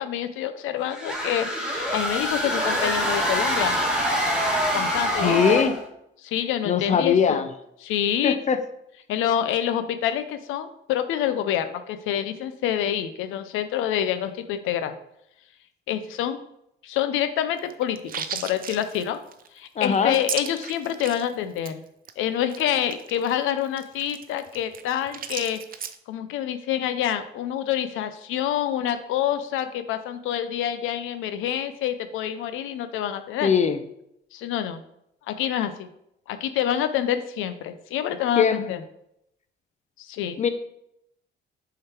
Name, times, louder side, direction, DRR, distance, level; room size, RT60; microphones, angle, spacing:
voice 1, 0.0-3.8 4.7-5.6 6.2-7.4 7.8-8.4 9.1-14.9 15.9-16.4 16.8-19.2 19.5-21.8 22.2-25.6 26.1-33.5 34.3-34.8 35.3-35.9 36.3-38.8 40.0-40.4, left 10 dB, 90° left, 10 dB, 0.5 m, -27 dB
sound 1, 0.9-5.8, equal, 5° right, 1.8 m, -25 dB
voice 2, 5.2-5.8 6.7-7.5 8.2-8.6 19.8-20.2 33.4-33.8 38.4-38.6 40.4-40.5, left 7 dB, 35° left, 10 dB, 0.6 m, -21 dB
sound 2, 17.6-21.3 21.6-21.7 22.1-22.2 22.4-26.0, right 8 dB, 45° right, 0.5 m, -35 dB
6.5 x 3.8 x 4.3 m, 0.78 s
cardioid pair, 90°, 20 cm